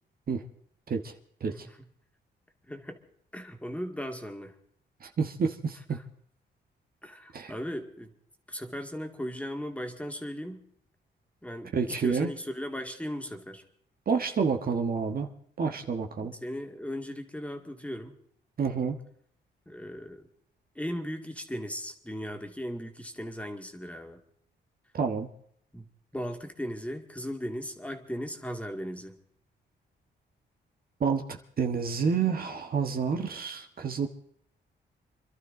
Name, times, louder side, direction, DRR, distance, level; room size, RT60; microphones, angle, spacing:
voice 1, 1.5-1.9 2.7-3.0 3.3-4.6 5.9-6.0 7.0-8.1 8.5-10.6 11.4-13.6 16.2-18.2 19.7-20.3 20.7-24.2 25.7-25.9 26.1-29.2, equal, 5° left, 4 dB, 2.2 m, -37 dB
voice 2, 5.0-6.0 7.3-7.5 11.7-12.3 14.1-15.3 15.6-16.3 18.6-19.0 24.9-25.3 31.0-34.1, right 5 dB, 50° right, 5 dB, 1.5 m, -29 dB
26.5 x 12.0 x 3.9 m, 0.64 s
cardioid pair, 85°, 19 cm